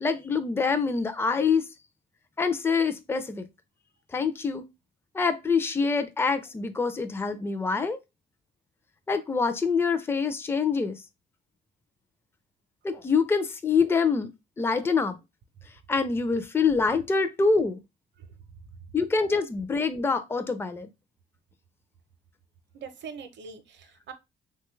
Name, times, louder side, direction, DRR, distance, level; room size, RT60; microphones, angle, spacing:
voice 1, 0.0-1.6 2.4-3.4 4.1-4.6 5.1-8.0 9.1-11.0 12.8-14.3 14.6-15.2 15.9-17.8 18.9-20.9, left 5 dB, 10° left, 0.4 m, -25 dB
voice 2, 22.7-24.1, right 6 dB, 65° right, 0.6 m, -42 dB
3.0 x 2.3 x 3.0 m
cardioid pair, 90°, 20 cm